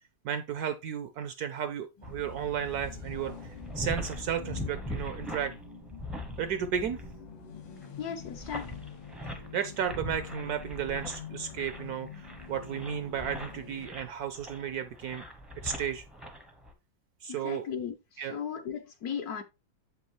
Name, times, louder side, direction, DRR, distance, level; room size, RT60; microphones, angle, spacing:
voice 1, 0.2-3.3 3.8-5.5 6.4-7.0 9.2-15.2 15.6-16.0 17.2-17.7 18.2-18.4, right 8 dB, 70° right, 0.9 m, -33 dB
sound 1, 2.0-13.9, left 7 dB, 85° left, 1.7 m, -46 dB
sound 2, 2.0-16.7, left 1 dB, ahead, 0.5 m, -42 dB
voice 2, 8.0-8.7 17.3-19.4, left 7 dB, 65° left, 1.0 m, -36 dB
7.6 x 5.4 x 3.0 m
omnidirectional pair, 2.1 m